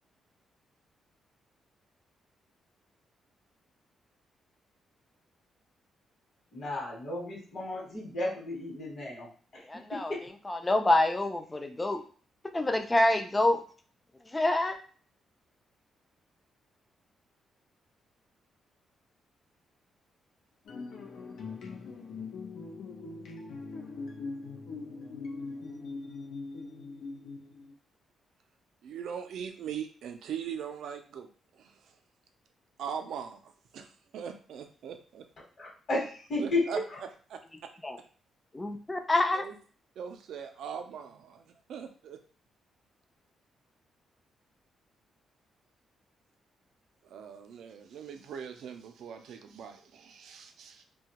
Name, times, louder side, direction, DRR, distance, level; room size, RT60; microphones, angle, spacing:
voice 1, 6.5-9.3 10.1-10.2 35.6-36.6, left 2 dB, 45° left, -3 dB, 1.1 m, -33 dB
voice 2, 9.6-10.2 10.4-12.0 12.5-13.6 14.3-14.8 37.8-38.0 38.5-39.5, left 1 dB, 15° left, 5 dB, 0.3 m, -27 dB
sound 1, 20.7-27.7, left 4 dB, 80° left, 0.5 m, -41 dB
voice 3, 28.8-31.9 32.8-33.9 34.1-35.3 36.4-36.8 37.3-37.7 38.0-38.1 39.3-39.5 40.0-42.2 47.0-50.8, right 7 dB, 75° right, 6 dB, 0.4 m, -41 dB
2.8 x 2.2 x 2.8 m, 0.41 s
cardioid pair, 135°, 0 cm